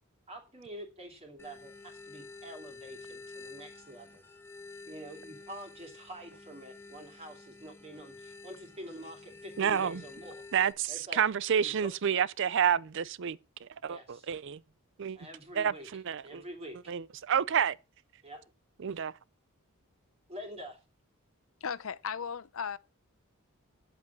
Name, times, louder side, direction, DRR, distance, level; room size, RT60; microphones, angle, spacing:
voice 1, 0.3-4.2 4.9-10.4 10.9-11.2 11.6-11.9 13.9-14.3 15.2-15.9 16.2-16.9 18.2-18.4 20.3-20.8, right 1 dB, 25° right, 2.6 m, -47 dB
sound 1, 1.4-10.7, left 3 dB, 10° left, 1.1 m, -50 dB
voice 2, 9.6-10.0 10.5-14.6 15.0-15.2 15.6-16.4 16.9-17.8 18.8-19.1, right 8 dB, 55° right, 0.5 m, -29 dB
voice 3, 21.6-22.8, left 6 dB, 65° left, 0.6 m, -36 dB
8.0 x 7.9 x 7.0 m
head